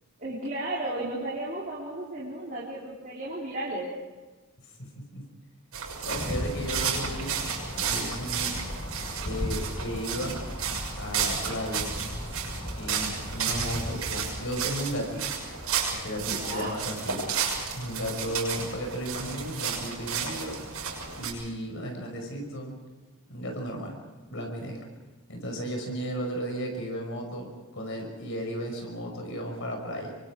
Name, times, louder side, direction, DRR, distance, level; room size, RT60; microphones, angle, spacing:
voice 1, 0.2-3.9 16.2-16.8, right 1 dB, 35° right, -6 dB, 4.2 m, -34 dB
voice 2, 4.8-5.2 6.0-7.4 7.7-8.6 9.2-10.4 10.9-12.0 12.7-15.3 15.9-17.3 17.7-20.6 21.2-22.7 23.3-24.0 24.3-24.8 25.3-30.1, equal, 55° left, 2 dB, 5.5 m, -34 dB
sound 1, 5.7-21.3, right 6 dB, 75° right, 6.7 m, -32 dB
sound 2, 6.1-13.5, left 1 dB, 20° left, 1.2 m, -37 dB
27.5 x 24.0 x 5.0 m, 1.2 s
head